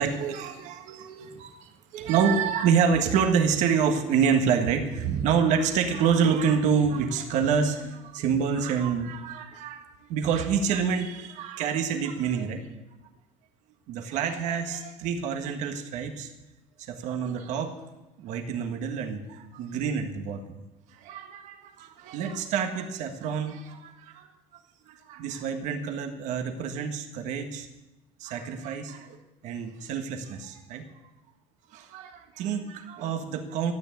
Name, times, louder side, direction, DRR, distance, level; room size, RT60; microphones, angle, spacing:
voice 1, 0.0-12.7 13.9-16.3 16.8-17.7 18.2-20.6 20.9-24.3 24.9-27.7 28.2-29.2 29.4-30.9 31.7-33.7, right 6 dB, 75° right, 5 dB, 1.5 m, -27 dB
13.5 x 9.4 x 8.7 m, 1.0 s
cardioid pair, 140°, 12 cm